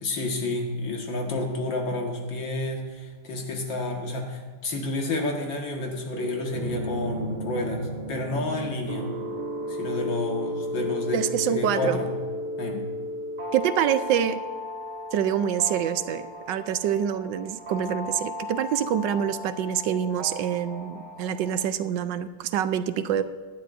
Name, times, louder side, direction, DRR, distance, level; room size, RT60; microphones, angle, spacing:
voice 1, 0.0-9.1 9.7-11.2 11.5-12.1 12.6-12.8, left 2 dB, 80° left, 1 dB, 2.4 m, -30 dB
sound 1, 6.1-21.7, equal, 70° right, 1.7 m, -35 dB
voice 2, 11.1-12.0 13.5-14.4 15.1-23.2, right 9 dB, 85° right, 12 dB, 1.3 m, -26 dB
18.0 x 12.0 x 2.6 m, 1.5 s
omnidirectional pair, 2.0 m